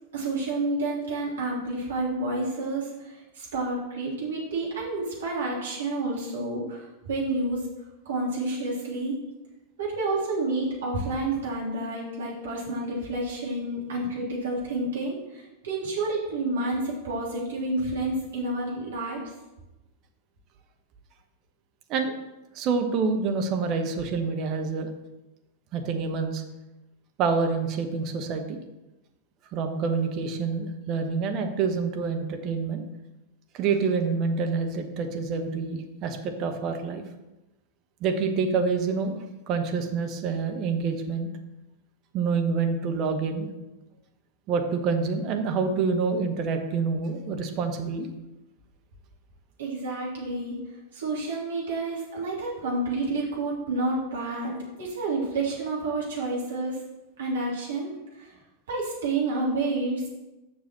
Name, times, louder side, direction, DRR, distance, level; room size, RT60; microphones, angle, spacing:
voice 1, 0.1-7.6 8.1-9.2 9.8-19.2 49.6-50.6 50.9-56.8 57.2-58.3 58.7-60.1, right 2 dB, 65° right, -5 dB, 3.5 m, -29 dB
voice 2, 22.5-24.9 25.7-26.4 27.2-28.6 29.5-32.8 33.5-37.0 38.0-41.3 42.1-43.5 44.5-48.1, right 5 dB, 35° right, 5 dB, 1.1 m, -27 dB
7.2 x 6.1 x 6.2 m, 1.0 s
figure-of-eight pair, 90°, 0 cm